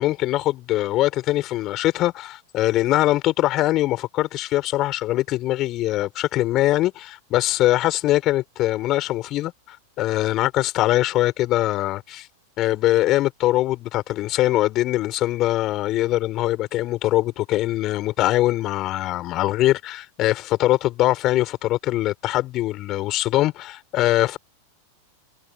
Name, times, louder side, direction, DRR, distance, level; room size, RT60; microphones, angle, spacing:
voice 1, 0.0-12.3 12.6-24.4, left 16 dB, 35° left, 6.6 m, -22 dB
figure-of-eight pair, 90°, 0 cm